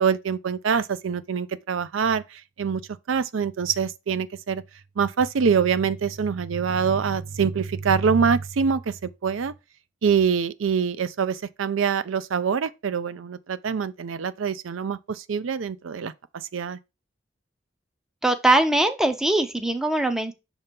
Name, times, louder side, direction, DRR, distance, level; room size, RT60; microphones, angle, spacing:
voice 1, 0.0-2.8 3.1-4.6 5.0-8.9 9.2-9.5 10.0-16.1 16.5-16.8, right 6 dB, 85° right, 0.5 m, -24 dB
voice 2, 18.2-20.3, right 2 dB, 5° right, 0.4 m, -21 dB
6.7 x 2.9 x 5.1 m
head